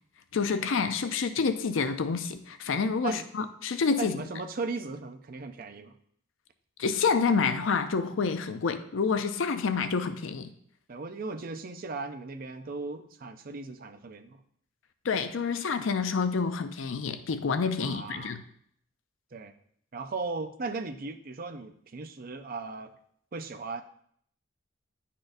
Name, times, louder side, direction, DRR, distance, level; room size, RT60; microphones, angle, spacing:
voice 1, 0.3-4.2 6.8-10.5 15.0-18.4, left 5 dB, 80° left, 10 dB, 0.5 m, -28 dB
voice 2, 4.0-6.0 10.9-14.4 17.8-18.4 19.3-19.5 19.9-22.9 23.3-23.8, right 3 dB, 45° right, 7 dB, 0.5 m, -37 dB
10.0 x 4.2 x 2.6 m, 0.65 s
head